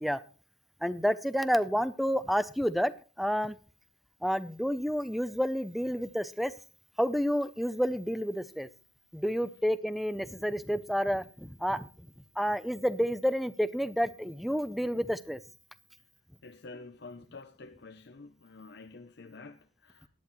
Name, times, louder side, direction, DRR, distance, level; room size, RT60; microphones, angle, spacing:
voice 1, 0.8-2.9 3.2-3.6 4.2-6.5 7.0-8.7 9.1-11.9 12.4-15.4, equal, ahead, 0.5 m, -29 dB
voice 2, 16.4-20.1, left 3 dB, 60° left, 0.7 m, -48 dB
17.0 x 10.5 x 3.1 m
head